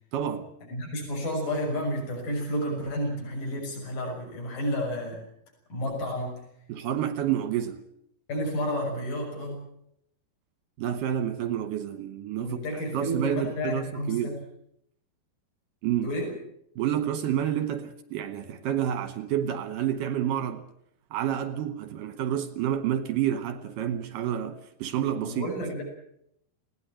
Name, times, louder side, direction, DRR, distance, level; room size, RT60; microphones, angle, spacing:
voice 1, 0.1-0.5 6.7-7.8 10.8-14.4 15.8-16.1 16.8-20.6 21.1-25.5, right 10 dB, 70° right, 2.2 m, -29 dB
voice 2, 0.7-5.2 5.7-6.4 8.3-9.7 12.4-14.4 16.0-16.3 25.2-25.8, equal, 50° left, 8.0 m, -31 dB
20.5 x 18.0 x 9.0 m
omnidirectional pair, 5.1 m